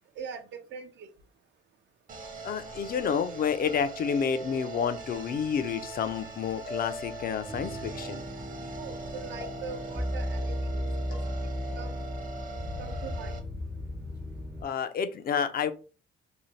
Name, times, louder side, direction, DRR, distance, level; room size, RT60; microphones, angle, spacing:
voice 1, 0.2-1.1 8.7-10.8 11.1-11.2 11.8-12.0 12.8-13.4, right 6 dB, 65° right, 0.5 m, -42 dB
sound 1, 2.1-13.4, right 3 dB, 45° right, 0.8 m, -42 dB
voice 2, 2.4-8.2 14.6-15.7, left 7 dB, 50° left, 0.4 m, -30 dB
sound 2, 4.2-5.0 6.7-7.6 9.4-10.0 11.1-11.3, left 2 dB, 75° left, 1.1 m, -43 dB
sound 3, 7.5-14.6, equal, 10° right, 0.4 m, -35 dB
2.7 x 2.1 x 3.1 m
cardioid pair, 90°, 20 cm